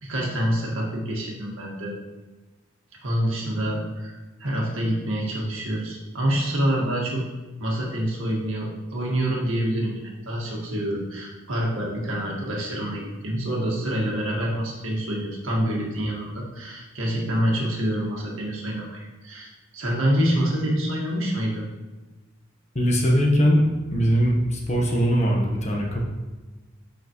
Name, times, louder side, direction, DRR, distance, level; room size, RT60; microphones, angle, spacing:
voice 1, 0.0-1.9 3.0-7.2 7.6-10.0 10.3-21.7, equal, 70° right, -3 dB, 1.7 m, -26 dB
voice 2, 22.7-23.6 23.9-26.0, equal, 35° left, -1 dB, 1.1 m, -21 dB
8.1 x 5.8 x 3.1 m, 1.2 s
head